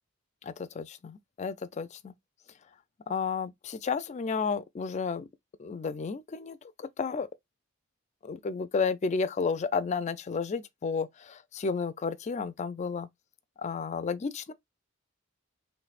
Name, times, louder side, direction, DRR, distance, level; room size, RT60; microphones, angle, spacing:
voice 1, 0.4-2.1 3.1-5.3 5.6-7.3 8.2-13.1 13.6-14.5, left 5 dB, 30° left, 0.3 m, -32 dB
3.3 x 3.1 x 2.4 m
head